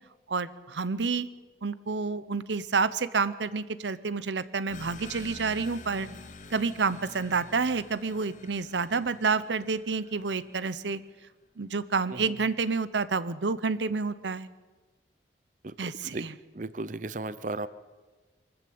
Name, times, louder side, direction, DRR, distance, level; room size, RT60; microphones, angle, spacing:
voice 1, 0.3-1.3 1.6-6.1 6.5-11.0 11.6-14.5 15.8-16.3, right 4 dB, 90° right, 16 dB, 0.8 m, -29 dB
sound 1, 4.7-11.0, left 3 dB, 45° left, 1.2 m, -48 dB
voice 2, 15.6-16.2 16.5-17.7, right 2 dB, 45° right, 15 dB, 0.7 m, -35 dB
24.0 x 14.0 x 8.6 m, 1.3 s
head